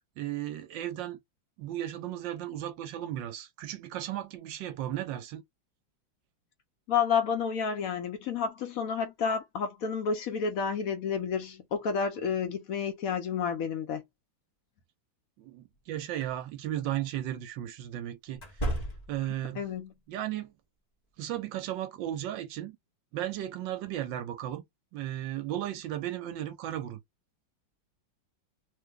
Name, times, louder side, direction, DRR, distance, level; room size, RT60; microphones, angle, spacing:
voice 1, 0.2-1.2 1.6-5.4 15.4-18.4 19.1-19.6 20.1-20.5 21.2-22.8 23.1-24.6 24.9-27.0, right 12 dB, 75° right, 1.2 m, -35 dB
voice 2, 6.9-14.0 19.6-19.9, left 6 dB, 65° left, 0.9 m, -30 dB
sound 1, 16.1-16.3 18.3-19.4, right 1 dB, 30° left, 0.8 m, -33 dB
3.1 x 2.1 x 3.5 m
omnidirectional pair, 2.1 m